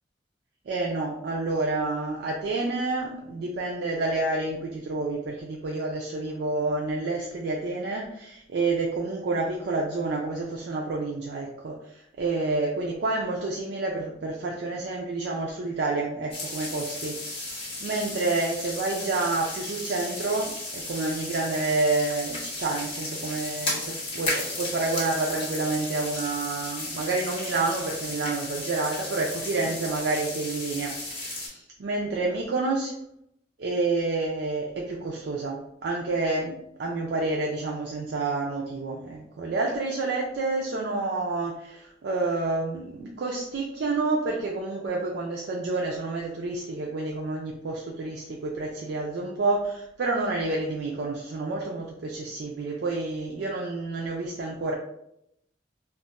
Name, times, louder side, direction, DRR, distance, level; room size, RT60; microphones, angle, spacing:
voice 1, 0.7-32.9 33.6-54.7, right 3 dB, 65° right, -2 dB, 0.4 m, -29 dB
sound 1, 16.3-31.5, left 2 dB, 30° left, 1.0 m, -34 dB
2.4 x 2.1 x 3.9 m, 0.78 s
head